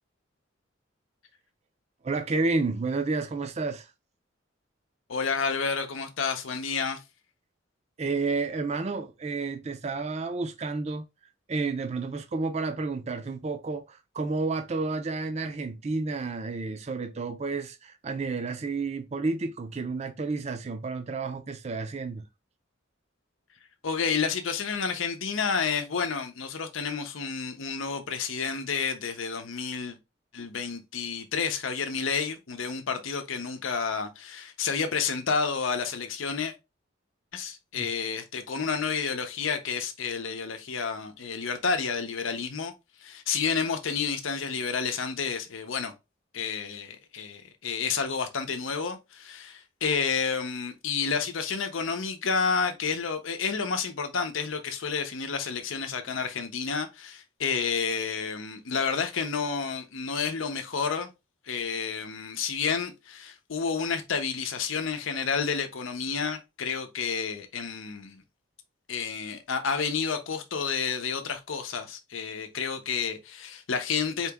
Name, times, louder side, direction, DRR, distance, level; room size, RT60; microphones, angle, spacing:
voice 1, 2.0-3.9 8.0-11.1 11.5-22.2 37.7-37.9, right 3 dB, 35° right, 0.5 m, -31 dB
voice 2, 5.1-7.0 23.8-30.0 30.3-36.5 37.3-42.7 43.0-45.9 46.3-61.1 61.5-68.2 68.9-74.3, left 5 dB, 85° left, 0.7 m, -30 dB
4.4 x 2.9 x 3.5 m
head